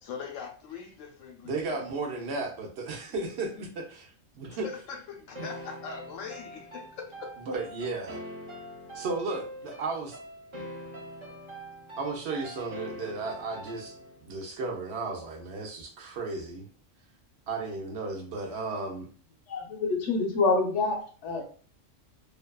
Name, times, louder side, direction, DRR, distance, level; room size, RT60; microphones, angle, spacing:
voice 1, 0.0-1.9 4.5-7.4, left 5 dB, 85° left, 1.0 m, -41 dB
voice 2, 1.4-4.7 5.4-5.5 7.5-8.2 8.9-10.2 12.0-16.7 17.5-19.1, right 3 dB, 65° right, 0.8 m, -34 dB
sound 1, 5.3-14.2, equal, 40° right, 0.4 m, -43 dB
voice 3, 19.5-21.4, left 3 dB, 70° left, 0.9 m, -27 dB
2.6 x 2.3 x 2.2 m
omnidirectional pair, 1.3 m